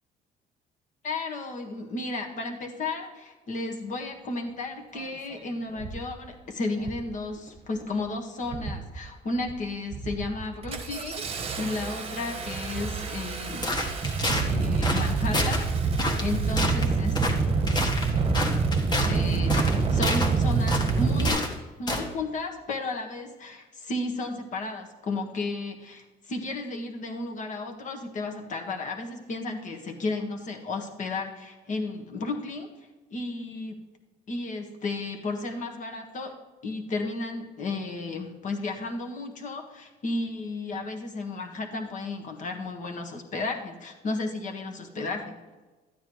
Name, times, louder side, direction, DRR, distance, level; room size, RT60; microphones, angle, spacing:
voice 1, 1.0-13.7 14.5-17.2 19.1-21.4 21.8-32.7 33.1-33.8 34.3-36.3 36.6-45.3, left 3 dB, 45° left, 3 dB, 1.5 m, -33 dB
Engine starting, 5.0-5.1 5.8-6.1 6.8-7.1 7.5-8.0 8.4-9.0 9.4-9.6 9.9-21.3, right 4 dB, 35° right, 1.0 m, -27 dB
sound 1, 13.6-14.5 14.8-15.1 15.3-15.6 16.0-16.3 16.6-16.8 17.1-17.4 17.7-19.1 19.5-20.3 20.7-21.5 21.9-22.1, left 1 dB, 25° left, 1.3 m, -28 dB
12.5 x 9.2 x 3.1 m, 1.2 s
cardioid pair, 110°, 17 cm